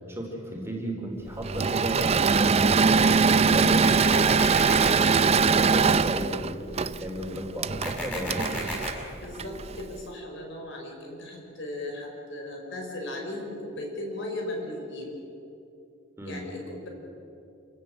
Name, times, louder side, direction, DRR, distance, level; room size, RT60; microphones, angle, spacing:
voice 1, 0.1-3.9 4.6-8.4 16.2-16.5, right 1 dB, 10° right, -1 dB, 3.8 m, -35 dB
Engine / Mechanisms, 1.4-9.8, right 5 dB, 30° right, 0.5 m, -22 dB
sound 1, 3.8-4.9 7.8-8.9, left 1 dB, 10° left, 6.4 m, -33 dB
voice 2, 9.2-15.2 16.2-16.9, left 1 dB, 60° left, 1 dB, 5.4 m, -37 dB
28.5 x 17.0 x 7.9 m, 2.8 s
head